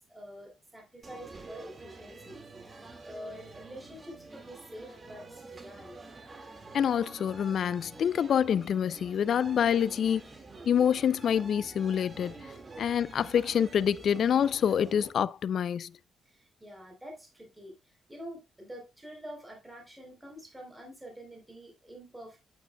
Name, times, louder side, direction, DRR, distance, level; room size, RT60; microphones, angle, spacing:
voice 1, 0.0-2.8 3.0-6.0 16.3-22.4, equal, 10° right, 3.5 m, -47 dB
sound 1, 1.0-15.1, right 3 dB, 30° right, 2.0 m, -48 dB
voice 2, 6.7-10.2 10.7-12.4 12.8-15.9, left 8 dB, 60° left, 0.4 m, -26 dB
9.2 x 8.6 x 2.2 m
cardioid pair, 90°, 0 cm